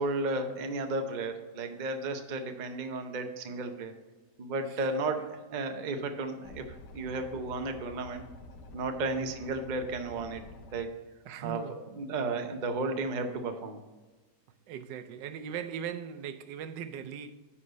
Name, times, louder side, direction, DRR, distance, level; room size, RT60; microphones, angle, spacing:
voice 1, 0.0-3.9 4.4-6.6 6.9-8.2 8.7-10.4 10.7-10.9 11.4-11.6 12.0-13.8, right 3 dB, 50° right, 0.5 m, -33 dB
sound 1, 6.4-10.8, left 1 dB, 80° left, 1.4 m, -49 dB
voice 2, 11.2-11.8 14.7-17.3, right 8 dB, 90° right, 1.3 m, -39 dB
10.0 x 4.3 x 5.1 m
omnidirectional pair, 1.9 m